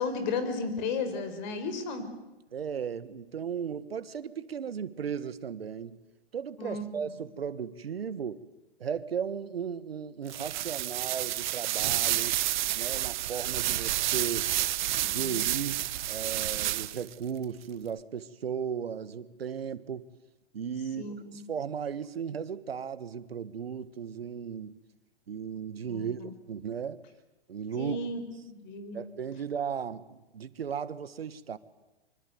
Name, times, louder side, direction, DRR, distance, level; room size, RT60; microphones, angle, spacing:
voice 1, 0.0-2.1 6.6-7.0 15.0-15.4 21.0-21.4 25.9-26.3 27.8-28.2 28.5-29.0, left 4 dB, 45° left, 5.5 m, -34 dB
voice 2, 2.5-6.0 6.3-8.4 8.8-12.4 12.7-14.5 15.0-20.1 20.5-24.8 25.3-27.0 27.5-28.0 28.9-31.6, right 7 dB, 75° right, 1.5 m, -36 dB
sound 1, 10.3-17.1, right 14 dB, 50° right, 0.9 m, -30 dB
25.0 x 25.0 x 9.4 m
figure-of-eight pair, 115°, 31 cm